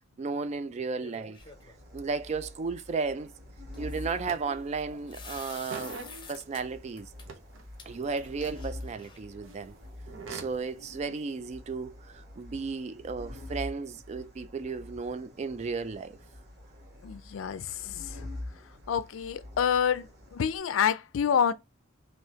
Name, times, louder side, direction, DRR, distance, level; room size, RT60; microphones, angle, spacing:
voice 1, 0.2-1.4 1.9-3.3 3.8-6.0 6.3-7.1 7.9-9.7 10.3-16.2, right 4 dB, 35° right, 0.3 m, -34 dB
sound 1, 1.0-1.8 3.7-6.6 7.0-7.2 7.8-7.9 8.2-9.3, left 4 dB, 25° left, 0.7 m, -48 dB
sound 2, 1.4-20.6, left 1 dB, 55° right, 1.9 m, -46 dB
sound 3, 4.2-5.0 5.2-6.8 7.3-8.4 9.4-10.7, right 4 dB, 80° right, 0.7 m, -44 dB
voice 2, 17.0-18.3 18.9-21.5, left 7 dB, 75° left, 0.4 m, -28 dB
3.3 x 2.6 x 4.1 m
head